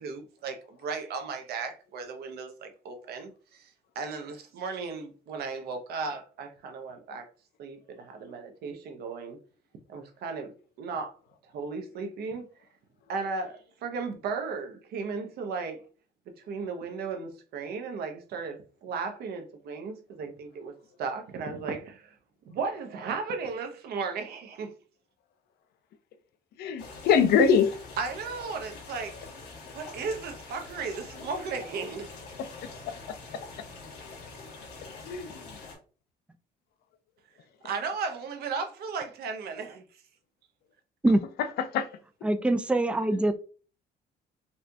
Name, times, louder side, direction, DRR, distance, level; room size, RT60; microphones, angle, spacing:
voice 1, 0.0-7.3 7.6-9.4 9.9-10.5 10.8-11.1 11.5-12.5 13.1-15.8 16.5-20.7 21.0-22.2 22.5-24.7 28.0-29.2 29.7-32.1 37.6-39.8, right 4 dB, 70° right, 0.7 m, -35 dB
voice 2, 26.6-27.7 32.6-32.9 35.1-35.3 41.6-41.9, left 6 dB, 70° left, 0.5 m, -23 dB
sound 1, 26.8-35.8, left 3 dB, 85° left, 1.6 m, -45 dB
voice 3, 42.2-43.3, right 1 dB, 5° right, 0.3 m, -23 dB
4.2 x 2.3 x 2.7 m
cardioid pair, 110°, 17 cm